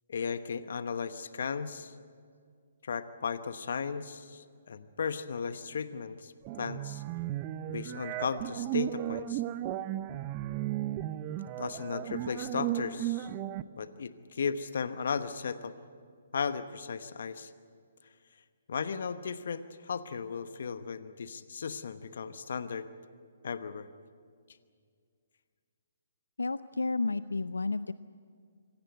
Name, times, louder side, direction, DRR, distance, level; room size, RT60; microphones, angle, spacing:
voice 1, 0.1-2.0 2.8-6.3 6.6-7.0 7.7-9.4 11.6-13.3 13.8-15.7 16.3-17.5 18.7-22.9 23.4-23.9, left 6 dB, 65° left, 12 dB, 1.1 m, -35 dB
sound 1, 6.4-13.6, right 13 dB, 30° right, 0.7 m, -35 dB
voice 2, 26.4-27.9, left 3 dB, 85° left, 15 dB, 0.5 m, -31 dB
25.5 x 17.5 x 9.0 m, 2.1 s
figure-of-eight pair, 130°, 0 cm